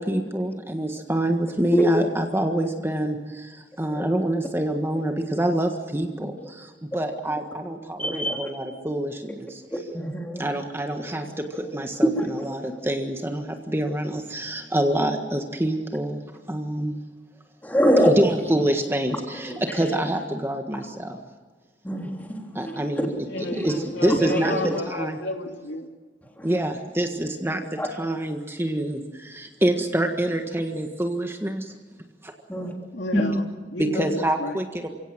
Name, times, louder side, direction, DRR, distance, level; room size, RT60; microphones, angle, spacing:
voice 1, 0.0-9.6 10.4-16.2 16.5-16.9 18.1-21.2 22.5-23.1 23.5-25.2 26.4-31.7 32.2-32.3 33.8-34.9, right 1 dB, 15° right, 4 dB, 1.6 m, -26 dB
voice 2, 8.0-8.5 9.7-10.5 10.9-11.0 12.2-12.6 17.6-18.1 19.5-19.6 20.7-20.8 21.8-23.1 23.5-23.8 24.1-24.6 27.8-27.9 32.5-32.7 33.1-33.2, equal, 10° left, 1 dB, 3.5 m, -24 dB
voice 3, 23.3-23.6 23.9-25.9 32.9-34.6, left 2 dB, 70° left, 4 dB, 2.6 m, -31 dB
29.5 x 17.0 x 7.4 m, 1.4 s
head